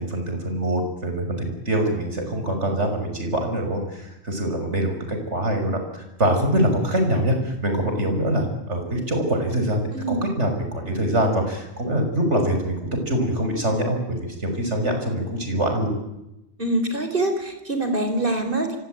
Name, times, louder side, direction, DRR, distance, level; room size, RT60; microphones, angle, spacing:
voice 1, 0.0-15.9, right 1 dB, 65° right, 5 dB, 6.3 m, -24 dB
voice 2, 9.9-10.3 16.6-18.8, right 2 dB, 45° right, 7 dB, 4.6 m, -24 dB
26.0 x 24.5 x 9.3 m, 0.93 s
omnidirectional pair, 1.3 m